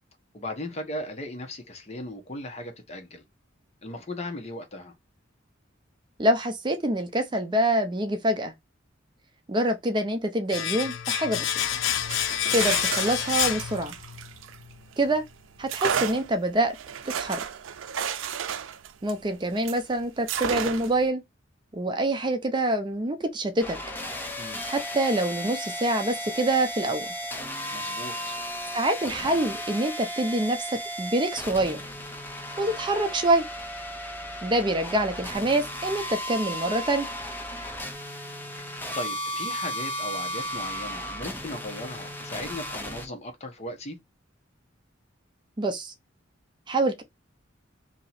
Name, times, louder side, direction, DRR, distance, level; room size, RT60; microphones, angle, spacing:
voice 1, 0.3-3.2 3.8-4.9 24.4-24.6 27.7-28.4 38.5-44.0, left 1 dB, 35° left, 0.9 m, -37 dB
voice 2, 6.2-8.5 9.5-11.6 12.5-13.9 15.0-15.2 15.6-16.8 17.2-17.4 19.0-21.2 21.7-23.8 24.6-27.1 28.7-30.7 31.0-31.8 32.6-33.4 34.4-37.1 45.6-45.9 46.7-47.0, right 1 dB, 25° right, 0.5 m, -26 dB
Domestic sounds home sounds, 10.5-14.3 14.6-14.7, left 10 dB, 70° left, 0.5 m, -28 dB
sound 1, 12.0-15.0 15.7-19.8 20.3-21.1, right 8 dB, 85° right, 0.4 m, -32 dB
sound 2, 23.6-43.1, equal, 10° left, 0.7 m, -35 dB
2.8 x 2.8 x 4.1 m
head